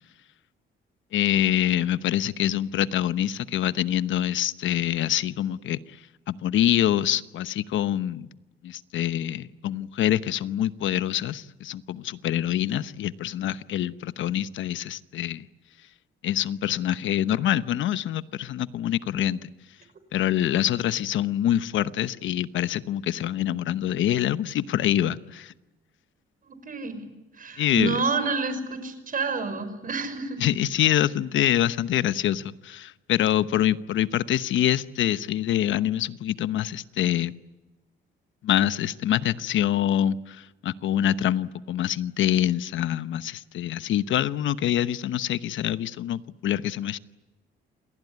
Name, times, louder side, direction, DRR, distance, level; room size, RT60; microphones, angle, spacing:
voice 1, 1.1-5.8 6.3-8.3 8.6-15.5 16.2-19.5 20.1-25.5 27.6-28.0 30.4-37.3 38.4-47.0, left 11 dB, 75° left, 14 dB, 1.0 m, -25 dB
voice 2, 26.5-27.0 27.4-30.4, right 4 dB, 45° right, 10 dB, 5.5 m, -29 dB
28.0 x 19.0 x 9.6 m, 1.1 s
cardioid pair, 90°, 20 cm